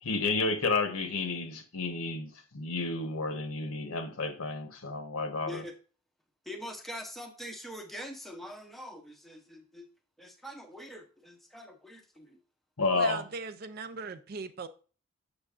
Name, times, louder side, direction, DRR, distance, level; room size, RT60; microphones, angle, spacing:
voice 1, 0.0-5.6 12.8-13.2, left 3 dB, 75° left, 1.0 m, -31 dB
voice 2, 6.5-9.9 10.2-12.4, equal, ahead, 0.7 m, -44 dB
voice 3, 12.9-14.7, right 5 dB, 45° right, 0.4 m, -39 dB
7.0 x 6.5 x 2.4 m
head